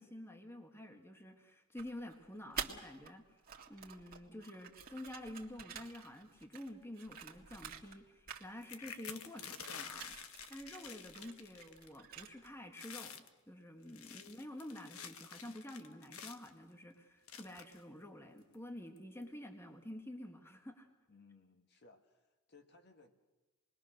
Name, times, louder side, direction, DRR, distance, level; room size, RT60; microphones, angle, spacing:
voice 1, 0.0-3.4 3.7-20.9, left 1 dB, 10° left, 4 dB, 1.7 m, -49 dB
sound 1, 1.8-3.1 3.4-8.0 8.3-8.9 9.1-12.6, right 7 dB, 40° right, 2.0 m, -49 dB
sound 2, 8.6-12.0 12.2-12.5 12.7-13.3 13.8-16.5 17.3-17.8 18.5-18.6 19.0-19.2, left 7 dB, 75° left, 1.4 m, -49 dB
voice 2, 21.1-23.3, left 3 dB, 50° left, 5 dB, 2.0 m, -63 dB
27.5 x 21.5 x 6.5 m, 1.1 s
head